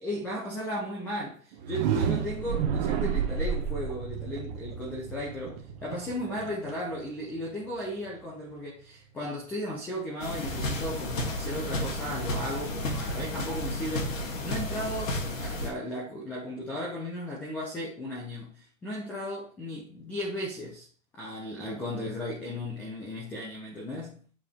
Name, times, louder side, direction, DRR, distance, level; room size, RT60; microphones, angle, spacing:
voice 1, 0.0-5.6 5.8-20.9 21.1-24.2, left 1 dB, 5° left, 0.4 m, -35 dB
sound 1, 1.5-7.4, right 7 dB, 35° right, 1.1 m, -31 dB
sound 2, 10.2-15.7, left 1 dB, 75° left, 2.5 m, -32 dB
7.4 x 4.9 x 3.4 m
hypercardioid pair, 145°, 41 cm